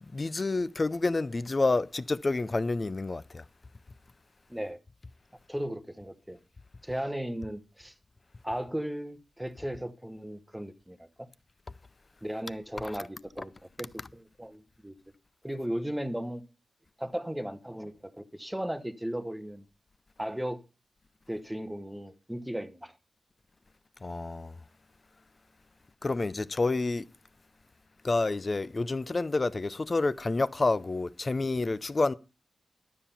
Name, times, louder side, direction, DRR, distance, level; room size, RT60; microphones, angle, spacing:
voice 1, 0.0-3.4 12.8-13.0 24.0-24.6 26.0-27.0 28.0-32.1, left 3 dB, 30° left, 0.5 m, -29 dB
voice 2, 5.5-6.4 6.8-7.9 8.4-11.3 12.2-13.5 13.8-14.9 15.4-16.4 17.0-19.6 20.2-20.6 21.3-22.9, equal, 5° right, 1.0 m, -36 dB
12.5 x 7.3 x 5.5 m
wide cardioid pair, 140°, 0 cm